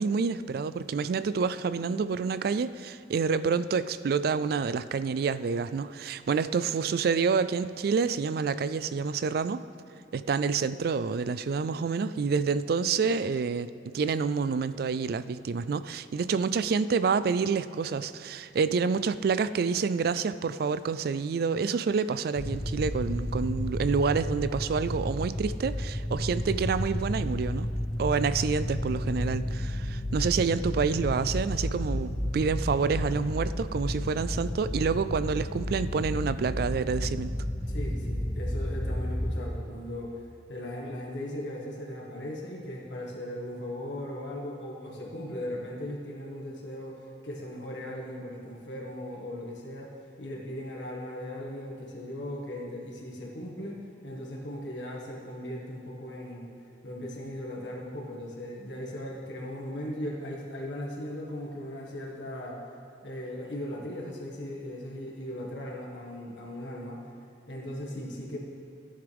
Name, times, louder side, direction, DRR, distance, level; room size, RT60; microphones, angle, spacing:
voice 1, 0.0-9.6 10.1-27.7 28.0-37.3, right 5 dB, 55° right, 14 dB, 0.3 m, -28 dB
sound 1, 22.4-39.4, left 1 dB, 20° left, 0.6 m, -32 dB
voice 2, 37.7-56.5 56.8-62.6 63.0-67.0 67.5-68.4, left 1 dB, 85° left, -3 dB, 1.7 m, -38 dB
15.0 x 9.6 x 3.5 m, 2.7 s
head